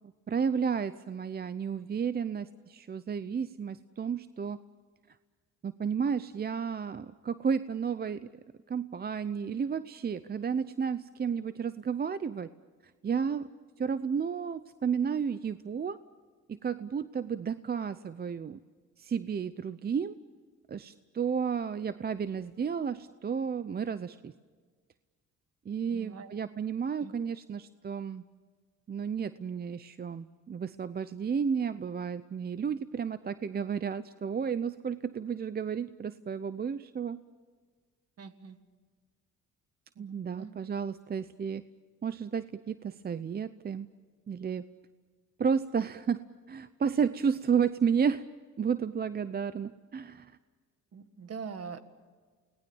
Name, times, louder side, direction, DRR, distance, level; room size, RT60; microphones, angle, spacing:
voice 1, 0.3-4.6 5.6-8.3 8.7-12.5 12.8-13.5 13.8-16.0 16.5-18.6 19.0-20.2 20.7-24.3 25.7-28.2 28.9-37.2 40.0-41.6 42.0-43.9 44.3-44.6 45.4-46.2 46.5-48.2 48.6-50.4, right 6 dB, 30° right, 14 dB, 0.6 m, -32 dB
voice 2, 25.9-26.3 27.0-27.1 38.2-38.6 40.0-40.5 50.9-51.8, right 5 dB, 55° right, 10 dB, 1.8 m, -43 dB
29.0 x 19.0 x 7.1 m, 1.5 s
cardioid pair, 90°, 30 cm